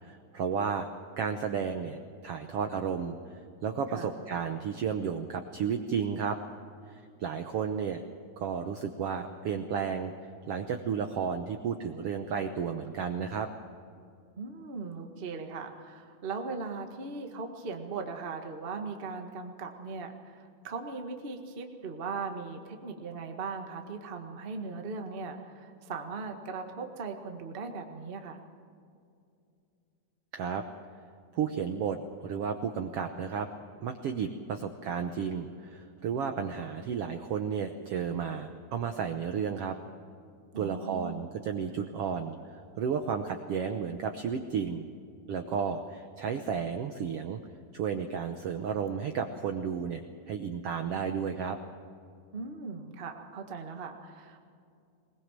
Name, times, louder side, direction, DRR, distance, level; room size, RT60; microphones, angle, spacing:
voice 1, 0.0-0.9 1.2-2.0 2.2-3.2 3.6-6.4 6.9-8.0 8.4-10.1 10.5-13.5 30.3-30.6 31.3-33.5 33.8-39.8 40.6-44.9 45.3-47.4 47.7-51.6, right 6 dB, 85° right, 6 dB, 1.3 m, -33 dB
voice 2, 14.4-28.4 40.5-41.2 52.3-54.4, right 4 dB, 40° right, 4 dB, 0.7 m, -39 dB
21.5 x 20.5 x 7.5 m, 2.5 s
omnidirectional pair, 4.0 m